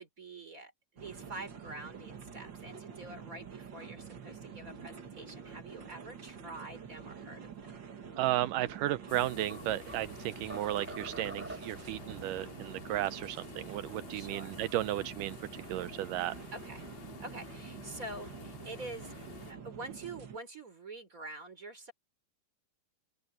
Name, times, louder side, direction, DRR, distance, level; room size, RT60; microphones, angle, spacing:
voice 1, 0.0-7.9 14.1-14.6 16.5-16.8 17.2-19.1 19.5-21.9, right 2 dB, 20° right, 3.8 m, -46 dB
sound 1, 1.0-20.4, right 6 dB, 45° right, 1.7 m, -48 dB
voice 2, 8.2-15.4 15.7-16.3, right 14 dB, 85° right, 1.9 m, -34 dB
sound 2, 8.9-10.1 10.5-11.9, right 1 dB, 5° right, 5.3 m, -45 dB
sound 3, 9.1-19.5, left 7 dB, 80° left, 4.8 m, -51 dB
open air
omnidirectional pair, 4.5 m